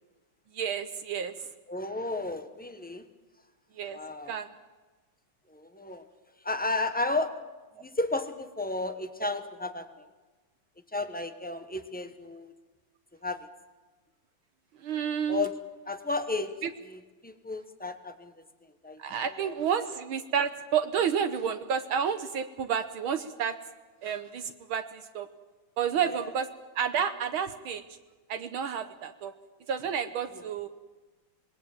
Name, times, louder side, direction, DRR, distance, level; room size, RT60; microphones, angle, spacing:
voice 1, 0.5-1.5 3.8-4.0 4.3-4.5 14.8-15.5 16.6-16.7 19.0-23.6 24.0-25.3 25.8-26.5 26.8-27.8 28.3-29.3 29.7-30.7, right 7 dB, 75° right, 8 dB, 1.8 m, -30 dB
voice 2, 1.7-3.0 3.9-4.3 5.5-6.0 6.4-7.4 7.8-10.1 10.9-12.5 13.2-13.5 15.3-15.6 15.9-16.5 16.8-18.3 18.8-19.0 19.3-19.5 26.1-26.3 30.3-30.4, left 2 dB, 5° left, 8 dB, 0.8 m, -33 dB
26.5 x 20.5 x 7.4 m, 1.3 s
omnidirectional pair, 2.4 m